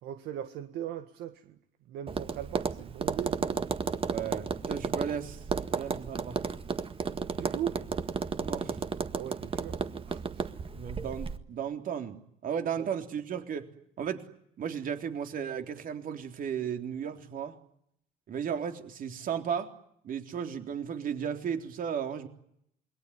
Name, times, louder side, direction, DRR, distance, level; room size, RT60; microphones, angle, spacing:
voice 1, 0.0-1.6 1.9-3.7 7.3-7.8 9.1-10.4, right 11 dB, 80° right, 1.8 m, -39 dB
Tap, 2.1-11.4, right 5 dB, 30° right, 1.8 m, -33 dB
voice 2, 4.1-5.4 5.7-6.4 8.4-8.8 10.7-13.7 14.0-14.2 14.6-17.6 18.3-19.7 20.0-22.3, right 8 dB, 55° right, 3.7 m, -35 dB
28.0 x 22.5 x 9.6 m
cardioid pair, 110°, 17 cm